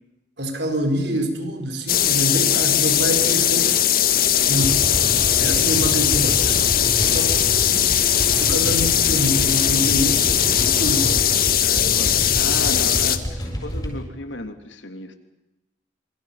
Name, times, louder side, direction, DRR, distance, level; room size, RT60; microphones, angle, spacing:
voice 1, 0.4-3.9 4.5-6.7 7.1-7.9 8.4-11.3, equal, 70° right, 6 dB, 4.8 m, -26 dB
sound 1, 1.9-13.2, left 10 dB, 50° left, 1.8 m, -19 dB
voice 2, 3.1-3.4 11.6-15.1, left 2 dB, 85° left, 7 dB, 3.1 m, -34 dB
sound 2, 4.5-11.4, right 1 dB, 25° right, 5.4 m, -37 dB
sound 3, 4.6-14.0, equal, 20° left, 7.3 m, -29 dB
27.0 x 27.0 x 5.9 m, 0.97 s
head